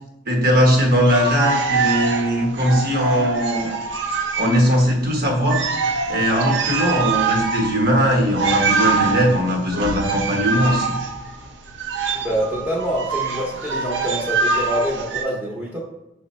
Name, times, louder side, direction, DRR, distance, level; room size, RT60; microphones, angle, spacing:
voice 1, 0.3-3.8 4.4-5.7 6.1-11.0, equal, 55° right, 1 dB, 1.0 m, -19 dB
sound 1, 0.9-4.8 5.1-5.2 5.4-15.2, right 4 dB, 75° right, 0.6 m, -24 dB
voice 2, 12.1-15.8, equal, 10° right, -5 dB, 0.8 m, -25 dB
5.8 x 2.1 x 4.1 m, 0.96 s
head